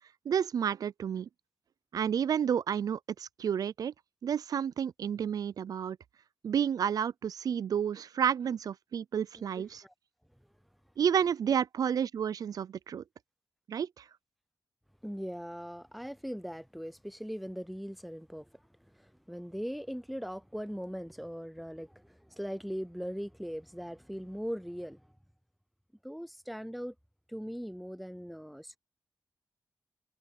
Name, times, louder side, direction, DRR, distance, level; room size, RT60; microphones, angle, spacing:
voice 1, 0.3-1.3 1.9-3.9 4.2-6.0 6.4-9.8 11.0-13.0 13.7-14.0, right 8 dB, 65° right, 0.3 m, -30 dB
voice 2, 9.5-9.9 15.0-18.6 18.9-25.1 26.0-26.9 27.3-28.8, equal, ahead, 0.6 m, -40 dB
wide cardioid pair, 125°, 7 cm